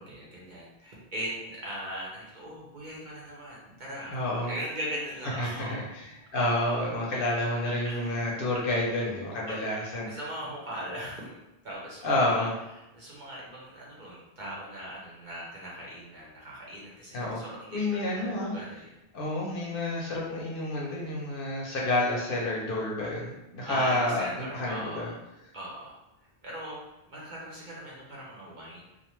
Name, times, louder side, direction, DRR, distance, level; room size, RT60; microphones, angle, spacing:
voice 1, 0.0-4.1 4.5-5.9 7.8-8.2 8.5-8.6 9.4-9.7 10.1-11.4 11.6-12.5 12.7-18.9 23.7-25.1 25.5-26.0 26.4-28.9, equal, 50° right, -5 dB, 0.8 m, -39 dB
voice 2, 4.1-4.5 5.4-10.1 12.0-12.5 17.1-17.4 17.7-18.5 19.1-25.1, left 1 dB, 60° left, -3 dB, 0.7 m, -29 dB
2.4 x 2.2 x 3.0 m, 0.93 s
omnidirectional pair, 1.1 m